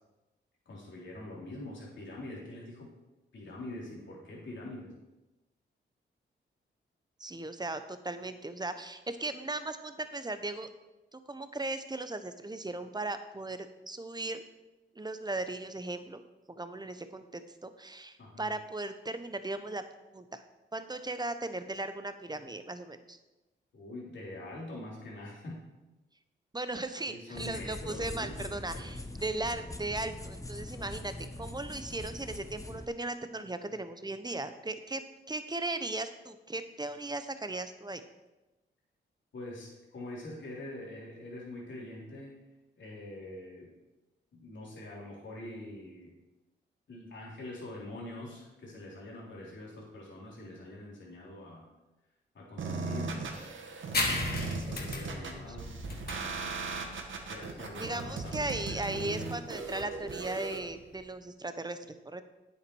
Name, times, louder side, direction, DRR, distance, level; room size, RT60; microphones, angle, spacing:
voice 1, 0.7-2.9 3.3-4.9 18.2-18.5 23.7-25.6 27.1-28.9 30.7-30.9 39.3-42.4 42.8-43.7 44.3-46.1 46.9-51.7 52.3-53.3 54.7-55.7 57.2-59.3, left 1 dB, 65° left, -4 dB, 3.6 m, -44 dB
voice 2, 7.2-10.7 11.1-13.6 13.9-14.4 14.9-16.2 16.5-19.8 20.1-20.4 20.7-23.2 26.5-31.1 31.4-35.0 35.3-38.0 55.5-55.6 57.8-62.2, right 2 dB, 20° right, 10 dB, 1.0 m, -37 dB
sound 1, 27.3-32.8, left 1 dB, 15° left, 1.0 m, -42 dB
sound 2, 52.6-60.6, right 4 dB, 70° right, 1.5 m, -38 dB
sound 3, 53.9-61.1, left 2 dB, 50° left, 2.2 m, -37 dB
9.2 x 8.2 x 4.7 m, 1.1 s
cardioid pair, 60°, 20 cm